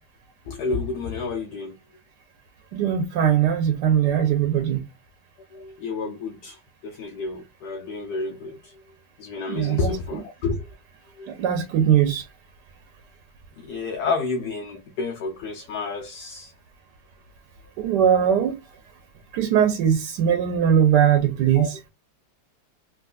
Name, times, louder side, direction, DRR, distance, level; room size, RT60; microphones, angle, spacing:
voice 1, 0.5-1.8 5.5-8.8 9.2-10.7 11.2-11.3 13.6-16.5 21.5-21.7, left 4 dB, 75° left, 1.1 m, -30 dB
voice 2, 2.7-4.8 9.5-9.9 11.3-12.2 17.8-18.5 19.3-21.7, right 9 dB, 85° right, 1.2 m, -20 dB
3.5 x 2.8 x 2.3 m
omnidirectional pair, 1.8 m